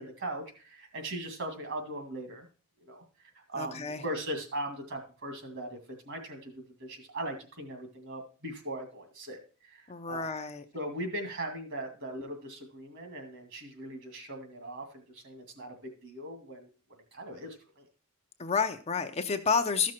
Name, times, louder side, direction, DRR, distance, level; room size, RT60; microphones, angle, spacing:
voice 1, 0.0-2.5 2.8-3.0 3.5-10.3 10.7-16.7 17.1-17.9, right 1 dB, 55° right, 5 dB, 2.2 m, -39 dB
voice 2, 3.5-4.0 9.9-10.6 18.4-19.9, left 5 dB, 30° left, 7 dB, 0.6 m, -30 dB
13.5 x 6.2 x 4.4 m, 0.37 s
head